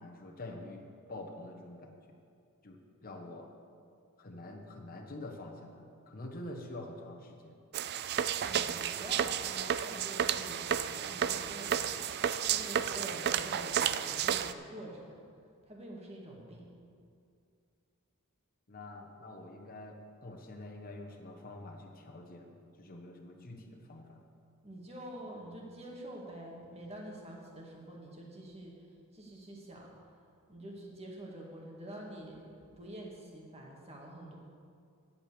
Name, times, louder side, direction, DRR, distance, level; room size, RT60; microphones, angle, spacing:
voice 1, 0.0-2.2 2.6-3.5 4.2-7.6 18.7-24.2, left 2 dB, 40° left, 2 dB, 1.3 m, -46 dB
sound 1, 7.7-14.5, right 9 dB, 50° right, 0.4 m, -32 dB
voice 2, 8.4-15.2 15.7-16.7 24.6-28.9 29.1-29.9 30.5-34.4, right 1 dB, 30° right, -1 dB, 2.1 m, -47 dB
10.5 x 8.6 x 6.9 m, 2.4 s
head